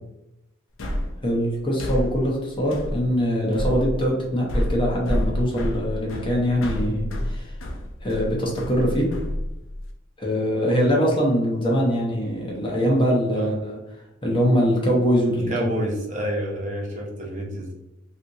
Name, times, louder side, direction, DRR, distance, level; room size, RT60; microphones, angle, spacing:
sound 1, 0.8-9.9, left 1 dB, 80° left, 0.5 m, -29 dB
voice 1, 1.2-7.5 8.0-9.1 10.2-13.8 14.2-15.7, equal, 25° left, -2 dB, 0.7 m, -23 dB
voice 2, 15.5-17.8, right 1 dB, 40° right, -2 dB, 0.7 m, -29 dB
3.4 x 2.7 x 2.7 m, 0.93 s
head